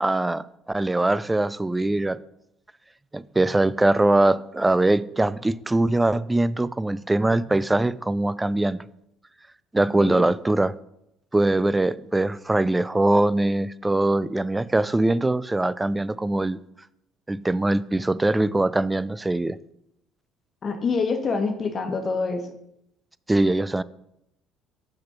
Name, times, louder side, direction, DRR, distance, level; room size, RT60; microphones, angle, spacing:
voice 1, 0.0-2.2 3.1-8.8 9.7-10.7 11.3-16.6 17.3-19.6 23.3-23.8, right 2 dB, 15° right, 0.3 m, -22 dB
voice 2, 20.6-22.5, left 4 dB, 40° left, 1.1 m, -26 dB
6.3 x 4.1 x 5.8 m
hypercardioid pair, 65°, 0 cm